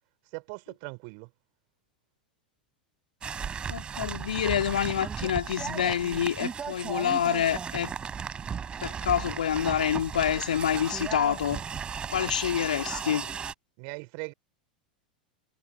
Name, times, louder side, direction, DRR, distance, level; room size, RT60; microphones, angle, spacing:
voice 1, 0.3-1.3 12.9-13.0 13.8-14.3, right 40 dB or more, 45° right, 5.0 m, -40 dB
sound 1, 3.2-13.5, right 7 dB, 20° right, 5.9 m, -35 dB
voice 2, 3.7-7.9 8.8-11.6 12.1-13.3, left 9 dB, 65° left, 3.5 m, -27 dB
figure-of-eight pair, 90°, 5 cm